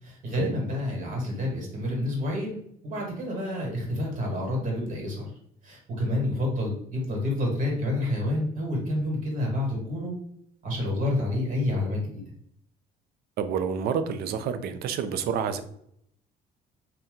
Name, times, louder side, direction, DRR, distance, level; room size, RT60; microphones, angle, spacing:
voice 1, 0.0-2.6 2.8-5.3 5.6-10.1 10.6-12.2, left 1 dB, 50° right, -1 dB, 1.4 m, -29 dB
voice 2, 13.4-15.6, right 7 dB, 70° right, 10 dB, 0.4 m, -28 dB
2.7 x 2.2 x 3.6 m, 0.68 s
cardioid pair, 110°, 17 cm